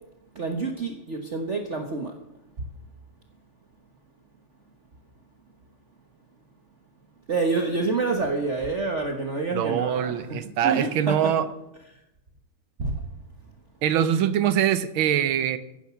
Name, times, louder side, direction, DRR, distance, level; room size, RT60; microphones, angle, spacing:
voice 1, 0.3-2.2 7.3-11.3 12.8-13.0, right 3 dB, 40° right, 3 dB, 1.3 m, -27 dB
voice 2, 9.5-11.5 13.8-15.6, right 9 dB, 85° right, 12 dB, 1.7 m, -23 dB
15.5 x 10.0 x 5.8 m, 0.91 s
omnidirectional pair, 2.2 m